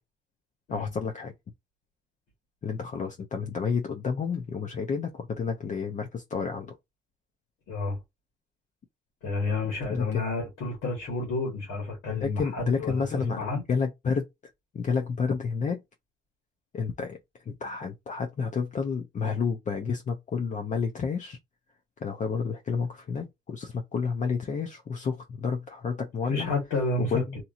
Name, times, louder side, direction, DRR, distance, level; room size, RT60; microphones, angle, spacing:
voice 1, 0.7-1.3 2.6-6.8 9.9-10.2 12.1-13.4 13.7-14.2 14.7-15.8 16.7-17.2 17.5-21.4 22.0-26.5 27.0-27.4, left 5 dB, 40° left, 0.6 m, -30 dB
voice 2, 7.7-8.0 9.2-13.6 26.3-27.2, left 3 dB, 90° left, 1.5 m, -30 dB
2.9 x 2.6 x 2.4 m
cardioid pair, 90°, 20 cm